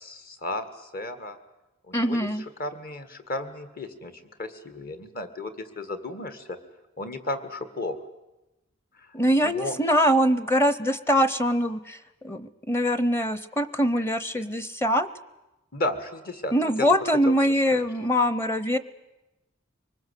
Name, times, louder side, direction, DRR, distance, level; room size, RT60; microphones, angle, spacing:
voice 1, 0.0-1.4 1.8-2.3 2.6-4.1 4.4-6.6 7.0-8.0 9.0-9.1 9.4-9.7 15.7-16.9 17.3-17.8, left 2 dB, 50° left, 9 dB, 2.0 m, -34 dB
voice 2, 1.9-2.4 9.1-12.0 12.2-15.1 16.5-18.8, equal, 15° left, 15 dB, 0.8 m, -23 dB
24.0 x 20.0 x 8.3 m, 0.98 s
head